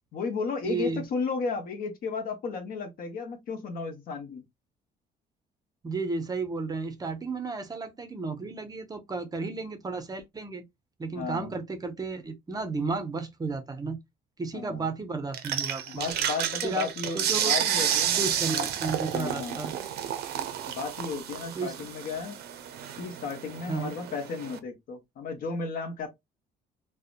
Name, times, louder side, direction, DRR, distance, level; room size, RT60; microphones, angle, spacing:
voice 1, 0.1-4.4 11.2-11.5 14.5-14.9 15.9-18.7 19.1-19.6 20.7-22.4 23.0-26.1, left 4 dB, 60° left, 0.8 m, -34 dB
voice 2, 0.6-1.0 5.8-10.6 11.0-14.0 14.4-16.1 16.6-16.9 17.1-17.9 18.2-19.8 21.5-21.9 23.7-23.9, right 4 dB, 20° right, 0.5 m, -33 dB
sound 1, 15.3-24.6, right 9 dB, 70° right, 0.5 m, -31 dB
2.7 x 2.1 x 2.4 m
cardioid pair, 110°, 17 cm